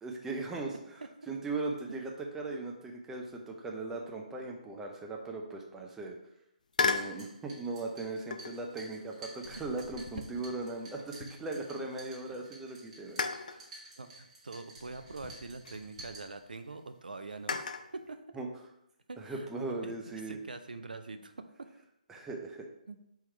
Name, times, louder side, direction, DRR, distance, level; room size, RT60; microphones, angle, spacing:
voice 1, 0.0-6.2 6.8-13.6 18.4-18.5 19.2-20.4 22.1-22.7, right 3 dB, 10° right, 0 dB, 0.5 m, -39 dB
sound 1, 6.7-7.2 8.3-8.7 9.4-11.7 12.1-12.2 13.2-13.6 14.8-16.1 17.5-17.9, left 4 dB, 65° left, 0.4 m, -36 dB
sound 2, 7.0-16.8, right 2 dB, 50° right, 1.6 m, -53 dB
voice 2, 14.0-17.7 17.9-18.2 19.1-19.5 19.8-19.9 20.3-21.7 22.9-23.0, right 3 dB, 80° right, 8 dB, 0.5 m, -44 dB
3.7 x 3.0 x 4.4 m, 0.83 s
figure-of-eight pair, 145°, 5 cm